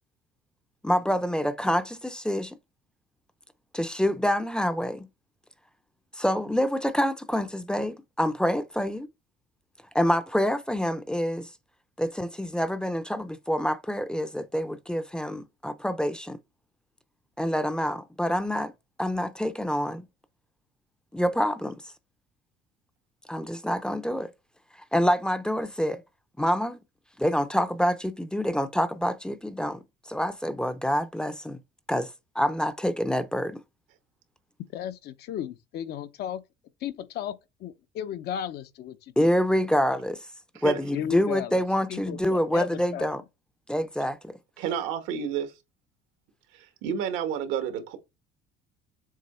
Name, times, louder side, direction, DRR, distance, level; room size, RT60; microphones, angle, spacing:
voice 1, 0.8-2.6 3.7-5.1 6.2-9.1 9.9-11.5 12.0-16.4 17.4-18.7 19.0-20.1 21.1-21.8 23.3-24.3 24.9-26.0 26.4-26.8 27.2-29.8 30.1-31.6 31.9-33.6 39.2-40.2 40.6-43.2 43.7-44.3, equal, 5° left, 0.6 m, -26 dB
voice 2, 34.7-36.4 36.8-39.3 40.9-41.6 41.9-43.1, left 9 dB, 60° left, 0.8 m, -35 dB
voice 3, 44.6-45.5 46.5-48.0, right 8 dB, 85° right, 1.4 m, -30 dB
7.4 x 3.0 x 4.3 m
cardioid pair, 125°, 19 cm